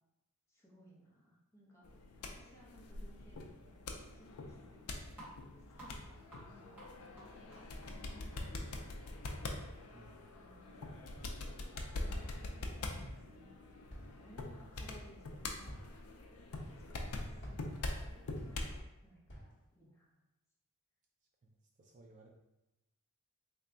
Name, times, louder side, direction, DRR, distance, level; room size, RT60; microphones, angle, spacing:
voice 1, 0.5-1.9 2.2-5.3 5.8-8.0 8.3-9.5 9.8-10.1 10.4-11.4 12.8-13.6 14.0-15.8 16.9-20.1, equal, 15° left, -5 dB, 0.8 m, -63 dB
sound 1, 1.8-18.8, left 2 dB, 75° left, 0.5 m, -44 dB
sound 2, 5.1-11.2, right 1 dB, 10° right, 1.5 m, -59 dB
voice 2, 9.5-10.3 21.8-22.3, right 2 dB, 35° right, 0 dB, 0.3 m, -61 dB
Walk footsteps, 11.1-11.6 12.1-12.6 13.0-13.5 13.9-14.4 14.7-15.1 15.6-16.0 16.5-17.0 17.4-18.9 19.3-19.7, equal, 55° left, 1.0 m, -52 dB
3.4 x 2.2 x 3.8 m, 0.94 s
head